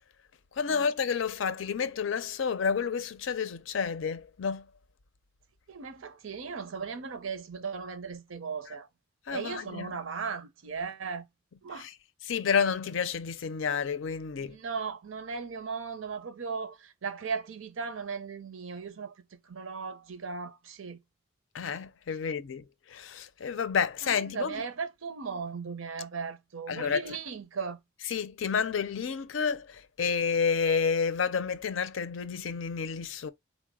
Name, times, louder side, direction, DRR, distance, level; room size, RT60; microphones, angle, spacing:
voice 1, 0.5-4.7 8.7-8.8 9.3-10.0 11.7-12.0 12.2-14.6 21.5-24.6 26.7-27.2 28.0-33.3, left 6 dB, 75° left, 0.5 m, -30 dB
voice 2, 5.7-8.9 9.3-11.2 11.6-11.9 14.4-19.1 19.5-21.0 24.0-27.8, right 5 dB, 80° right, 0.6 m, -37 dB
3.9 x 2.0 x 3.6 m
head